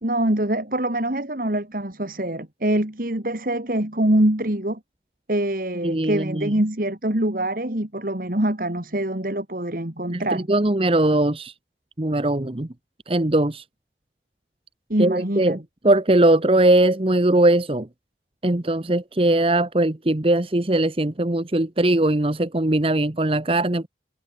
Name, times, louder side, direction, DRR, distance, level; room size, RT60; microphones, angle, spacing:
voice 1, 0.0-4.8 5.3-10.5 14.9-15.6, right 1 dB, 50° right, 2.5 m, -24 dB
voice 2, 5.8-6.5 10.1-11.5 12.0-12.7 13.1-13.6 15.0-15.6 15.8-17.9 18.4-23.9, right 1 dB, 30° right, 1.0 m, -20 dB
head